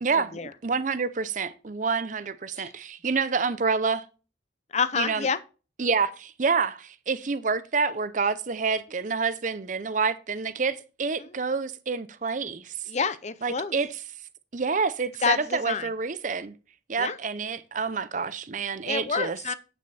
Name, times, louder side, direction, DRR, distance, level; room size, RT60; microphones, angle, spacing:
voice 1, 0.0-4.0 5.0-5.3 5.8-12.7 13.4-13.9 14.5-16.5 16.9-19.4, right 5 dB, 40° right, 0.6 m, -28 dB
voice 2, 4.7-5.4 11.2-11.4 12.9-13.7 15.2-15.9 17.0-17.2 18.9-19.6, left 5 dB, 35° left, 0.6 m, -28 dB
8.8 x 6.2 x 4.2 m
head